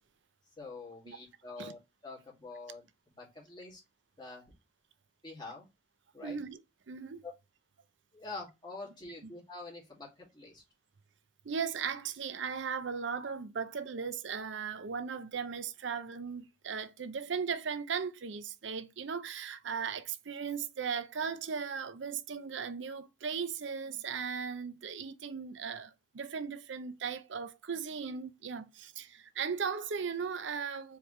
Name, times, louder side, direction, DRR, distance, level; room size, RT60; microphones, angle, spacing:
voice 1, 0.6-3.8 4.2-4.4 5.2-5.7 6.1-6.4 7.2-7.3 8.1-10.6, left 3 dB, 25° left, 2.2 m, -46 dB
voice 2, 6.2-6.6 6.9-7.2 11.4-31.0, right 6 dB, 65° right, 0.5 m, -37 dB
4.7 x 3.4 x 3.1 m
head